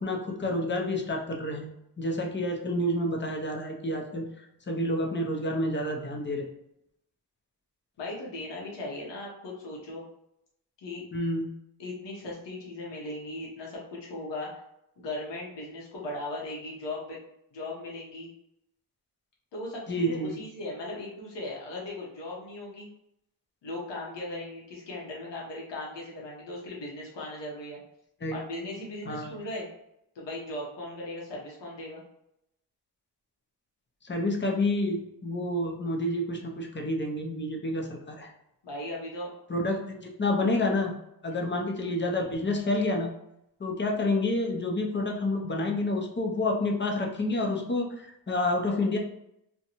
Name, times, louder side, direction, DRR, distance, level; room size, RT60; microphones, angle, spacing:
voice 1, 0.0-1.7 2.0-4.3 4.7-6.5 11.1-11.5 19.9-20.4 28.2-28.3 29.1-29.4 34.0-38.3 39.5-40.9 41.2-43.1 43.6-49.0, left 1 dB, 25° left, 1 dB, 0.5 m, -29 dB
voice 2, 8.0-10.0 10.8-11.0 11.8-14.6 15.0-17.2 17.5-18.3 19.5-22.9 23.6-27.8 28.3-29.7 30.1-32.0 38.6-39.3 41.3-41.4, left 2 dB, 90° left, -4 dB, 0.9 m, -38 dB
2.6 x 2.2 x 2.8 m, 0.81 s
wide cardioid pair, 105°, 42 cm